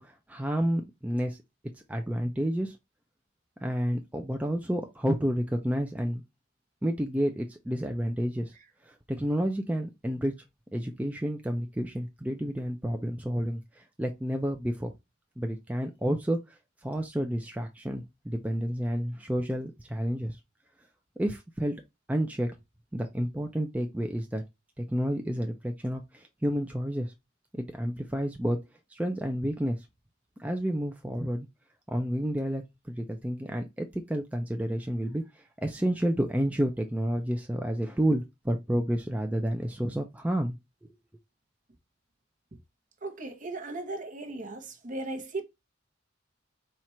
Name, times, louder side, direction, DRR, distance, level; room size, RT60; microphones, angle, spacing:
voice 1, 0.0-1.4 1.9-2.8 3.6-6.2 6.8-8.5 8.8-10.3 10.7-14.9 15.4-16.4 16.8-20.4 21.2-21.8 22.1-22.5 22.9-24.4 24.8-27.1 27.5-28.6 28.9-29.8 30.4-31.5 31.9-32.6 32.9-35.2 35.6-40.6, equal, 10° right, 0.4 m, -30 dB
voice 2, 43.0-45.4, right 2 dB, 40° right, 0.8 m, -37 dB
4.4 x 2.5 x 4.3 m
head